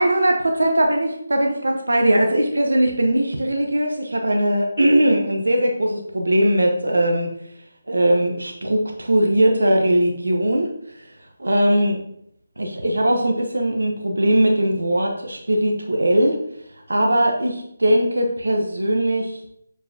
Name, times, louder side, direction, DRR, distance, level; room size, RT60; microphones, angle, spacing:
voice 1, 0.0-7.3 7.9-10.7 11.4-12.0 12.6-16.4 16.9-19.4, right 1 dB, 85° right, 2 dB, 0.9 m, -20 dB
7.2 x 4.6 x 2.9 m, 0.73 s
figure-of-eight pair, 160°, 0 cm